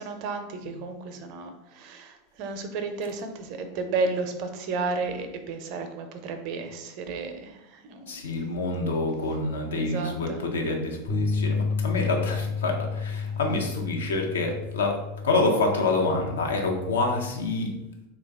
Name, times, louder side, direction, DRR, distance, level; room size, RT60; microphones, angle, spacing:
voice 1, 0.0-1.5 1.7-2.1 2.4-7.5 7.9-8.0 9.8-10.4, right 4 dB, 55° right, 6 dB, 0.5 m, -32 dB
voice 2, 8.1-15.0 15.2-17.7, left 2 dB, 80° left, 1 dB, 0.7 m, -27 dB
sound 1, 11.1-17.3, left 5 dB, 40° left, 0.6 m, -31 dB
3.1 x 2.3 x 3.4 m, 0.91 s
hypercardioid pair, 90°, 0 cm